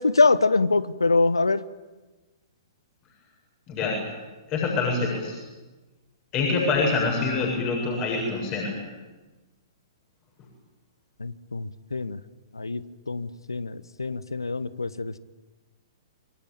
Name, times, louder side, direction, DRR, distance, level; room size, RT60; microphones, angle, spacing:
voice 1, 0.0-1.6 11.2-12.2 12.5-15.2, left 3 dB, 80° left, 17 dB, 1.1 m, -24 dB
voice 2, 3.7-4.0 4.5-5.4 6.3-8.8, left 3 dB, 30° left, -1 dB, 7.6 m, -25 dB
27.0 x 23.0 x 9.0 m, 1.2 s
figure-of-eight pair, 110°, 2 cm